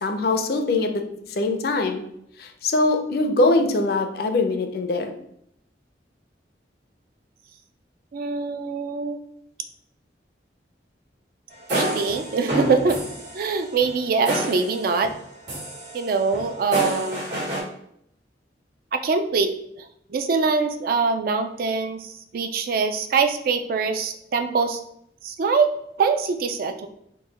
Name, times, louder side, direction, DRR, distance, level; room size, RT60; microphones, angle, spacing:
voice 1, 0.0-1.0 1.3-2.0 2.4-5.1, left 2 dB, 60° left, 6 dB, 0.5 m, -22 dB
voice 2, 8.1-9.2 11.7-13.0 13.3-15.1 15.9-17.2 18.9-19.5 19.8-24.8 25.2-25.7 26.0-26.9, right 4 dB, 55° right, 8 dB, 0.3 m, -23 dB
sound 1, 11.5-15.2 15.5-17.6, equal, 75° right, 1.5 m, -29 dB
3.8 x 2.2 x 4.0 m, 0.73 s
head